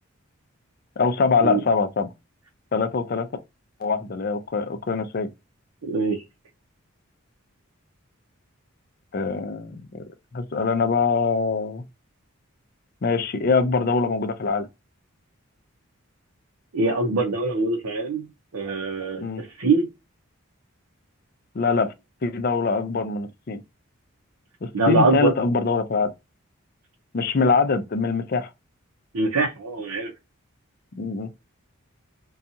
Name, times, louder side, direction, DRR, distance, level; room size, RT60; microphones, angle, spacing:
voice 1, 1.0-2.1 2.7-3.3 3.8-5.3 9.1-10.0 10.3-11.8 13.0-14.7 19.2-19.4 21.5-21.9 22.2-23.6 24.6-26.1 27.1-28.5 31.0-31.3, left 4 dB, 45° left, 0.4 m, -23 dB
voice 2, 5.9-6.2 16.7-18.2 18.5-19.9 24.7-25.3 29.1-30.1, right 3 dB, 90° right, 0.6 m, -23 dB
2.7 x 2.3 x 2.6 m
head